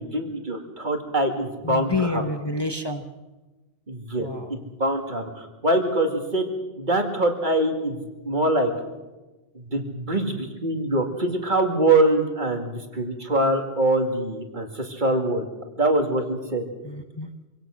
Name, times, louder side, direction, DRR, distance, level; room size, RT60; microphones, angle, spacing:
voice 1, 0.0-2.2 3.9-6.5 6.8-8.7 9.5-15.5 15.8-16.6, right 2 dB, 45° right, 4 dB, 2.4 m, -24 dB
voice 2, 1.6-3.0 4.2-4.5 16.8-17.3, left 2 dB, 25° left, 6 dB, 1.1 m, -28 dB
25.0 x 17.5 x 6.4 m, 1.1 s
omnidirectional pair, 1.1 m